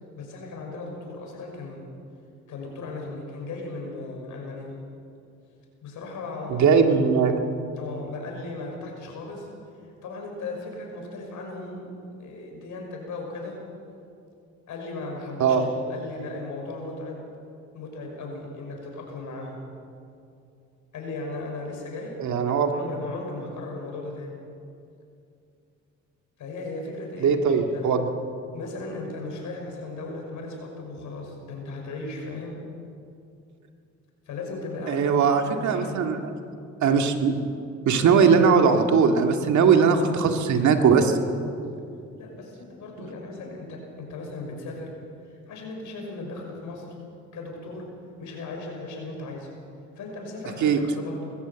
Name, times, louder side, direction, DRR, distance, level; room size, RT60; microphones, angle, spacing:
voice 1, 0.1-1.9 2.5-4.7 5.8-6.8 7.8-9.5 10.0-13.6 14.7-17.2 17.7-19.6 20.9-24.4 26.4-27.9 28.5-32.6 34.3-36.1 42.2-44.9 45.2-46.9 47.3-47.9 48.2-49.5 50.0-51.3, left 2 dB, 75° left, 1 dB, 5.9 m, -37 dB
voice 2, 6.5-7.3 15.4-15.6 22.2-22.7 27.2-28.0 34.9-36.2 36.8-37.5 37.9-41.2 50.6-50.8, right 6 dB, 70° right, 5 dB, 2.0 m, -20 dB
21.0 x 15.5 x 8.2 m, 2.6 s
cardioid pair, 90°, 30 cm